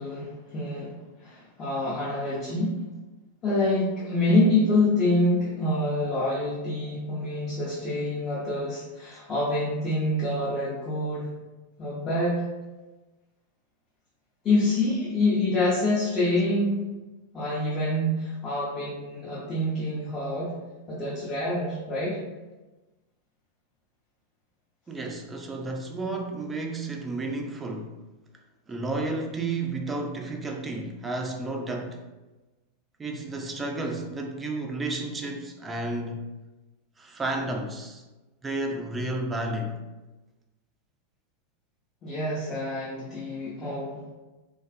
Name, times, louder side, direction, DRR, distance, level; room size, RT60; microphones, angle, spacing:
voice 1, 0.0-2.8 3.4-11.4 11.8-12.4 14.4-16.8 17.3-20.5 20.9-22.2 42.0-44.0, left 1 dB, 25° left, -8 dB, 0.6 m, -26 dB
voice 2, 24.9-28.0 28.7-32.0 33.0-36.3 37.0-38.0 38.4-39.8, right 2 dB, 15° right, 3 dB, 0.3 m, -32 dB
2.3 x 2.3 x 2.4 m, 1.1 s
figure-of-eight pair, 90°, 0 cm